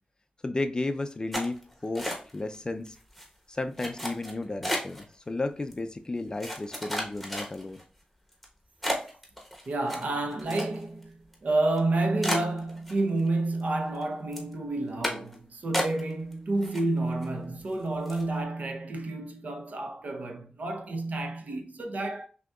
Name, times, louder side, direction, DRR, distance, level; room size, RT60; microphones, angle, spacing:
voice 1, 0.4-2.1 2.3-3.0 3.5-7.8, left 2 dB, 30° left, 0.4 m, -33 dB
sound 1, 1.3-2.5 2.8-3.3 3.8-5.0 5.7-5.8 6.4-7.8 8.3-8.4 8.8-11.0 11.3-11.4 11.8-11.9 12.2-13.3 13.6-14.0 14.3-14.5 15.0-15.3 15.7-16.3 16.6-17.2 17.6-17.7 18.0-18.3, equal, ahead, 1.0 m, -33 dB
voice 2, 9.7-22.3, right 2 dB, 65° right, 0.7 m, -30 dB
6.0 x 2.8 x 2.3 m
wide cardioid pair, 125°, 3 cm